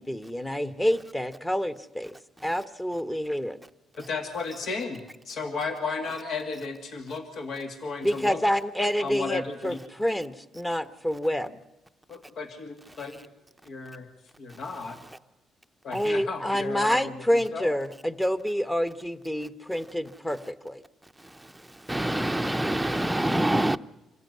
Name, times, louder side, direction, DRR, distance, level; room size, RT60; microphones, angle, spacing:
voice 1, 0.0-2.1 2.4-3.6 8.0-11.6 15.9-20.8, equal, 10° left, 1.3 m, -28 dB
voice 2, 3.9-8.4 9.0-9.8 12.1-13.3 13.6-14.1 14.4-15.0 15.8-17.2 17.5-17.7, left 4 dB, 65° left, 2.4 m, -34 dB
voice 3, 21.2-23.8, right 1 dB, 5° right, 0.8 m, -26 dB
26.0 x 15.0 x 9.6 m
cardioid pair, 90°, 0 cm